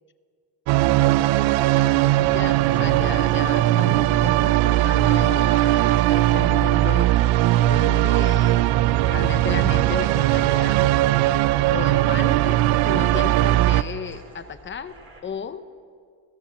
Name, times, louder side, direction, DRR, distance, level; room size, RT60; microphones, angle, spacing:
sound 1, 0.7-13.8, right 15 dB, 85° right, 0.7 m, -19 dB
voice 1, 1.2-7.1 7.7-8.7 9.1-10.8 11.7-14.9 15.2-15.6, left 7 dB, 25° left, 10 dB, 0.9 m, -34 dB
sound 2, 4.4-15.2, right 2 dB, 30° right, 4.3 m, -47 dB
27.5 x 16.5 x 7.2 m, 2.1 s
cardioid pair, 160°, 46 cm